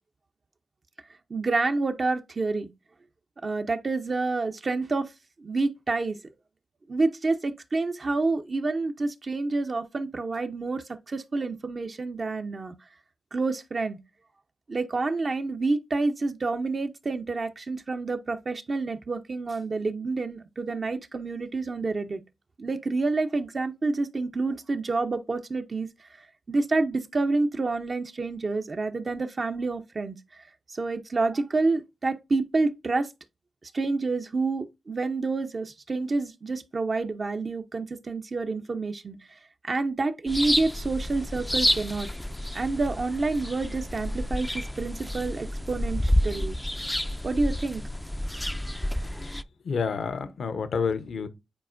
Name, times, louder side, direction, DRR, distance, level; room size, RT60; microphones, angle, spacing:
voice 1, 1.3-2.7 3.4-5.1 5.4-6.2 6.9-12.7 13.3-14.0 14.7-22.2 22.6-26.1 26.5-30.2 30.7-33.1 33.6-39.4 39.6-42.1 42.5-46.6 47.2-47.8, right 3 dB, 50° right, 0.6 m, -28 dB
sound 1, 40.3-49.4, left 1 dB, 10° left, 0.3 m, -29 dB
voice 2, 49.6-51.3, left 5 dB, 75° left, 0.7 m, -29 dB
9.1 x 4.2 x 2.5 m
cardioid pair, 50°, 0 cm